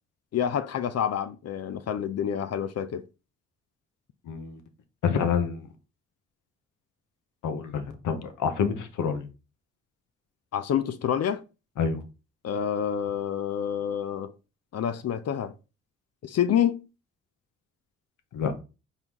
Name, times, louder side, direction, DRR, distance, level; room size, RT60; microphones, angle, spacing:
voice 1, 0.3-3.0 10.5-11.4 12.4-14.3 14.7-15.5 16.2-16.8, left 9 dB, 55° left, 0.6 m, -27 dB
voice 2, 4.3-4.6 5.0-5.6 7.4-9.3 11.8-12.0 18.3-18.6, left 6 dB, 70° left, 1.0 m, -27 dB
4.0 x 3.6 x 3.0 m
hypercardioid pair, 45°, 32 cm